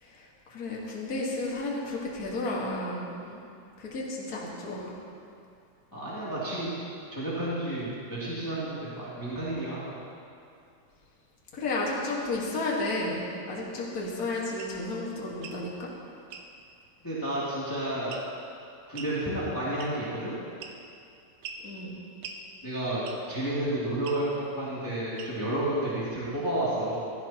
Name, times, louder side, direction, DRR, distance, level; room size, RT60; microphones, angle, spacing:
voice 1, 0.0-3.4 3.8-5.0 11.5-15.9 21.6-22.0, left 2 dB, 80° left, -4 dB, 0.8 m, -32 dB
voice 2, 5.9-6.7 7.1-9.9 17.0-18.1 18.9-20.3 22.6-23.0 23.3-27.1, right 1 dB, 10° left, -10 dB, 1.5 m, -31 dB
sound 1, 14.6-14.8 15.3-15.6 16.3-16.5 18.1-18.4 19.0-19.2 19.8-20.1 20.6-21.0 21.4-21.7 22.2-22.4 23.1-23.4 24.0-24.2 25.2-25.5, right 6 dB, 75° right, 2.4 m, -42 dB
16.5 x 14.5 x 3.0 m, 2.5 s
omnidirectional pair, 4.5 m